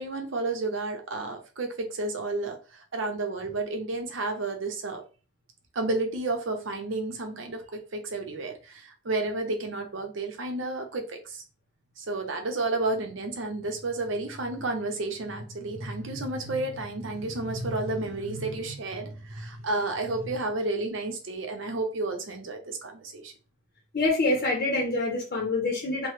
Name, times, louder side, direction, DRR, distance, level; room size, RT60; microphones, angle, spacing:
voice 1, 0.0-5.0 5.7-11.4 12.0-23.3, right 2 dB, 75° right, 0.7 m, -31 dB
voice 2, 23.9-26.1, left 2 dB, 45° left, 0.7 m, -26 dB
3.0 x 2.1 x 3.0 m
head